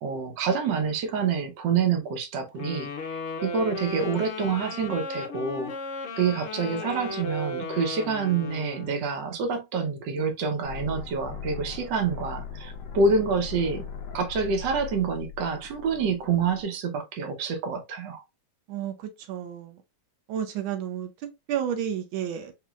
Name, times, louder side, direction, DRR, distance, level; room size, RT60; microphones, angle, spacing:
voice 1, 0.0-5.7 6.2-13.8 14.1-18.2, right 5 dB, 65° right, 1.4 m, -27 dB
Wind instrument woodwind instrument, 2.6-9.0, left 3 dB, 85° left, 0.6 m, -35 dB
sound 1, 10.6-16.6, left 7 dB, 65° left, 1.3 m, -39 dB
voice 2, 18.7-19.8 20.3-22.5, right 9 dB, 85° right, 1.4 m, -31 dB
5.0 x 2.7 x 2.4 m
omnidirectional pair, 2.2 m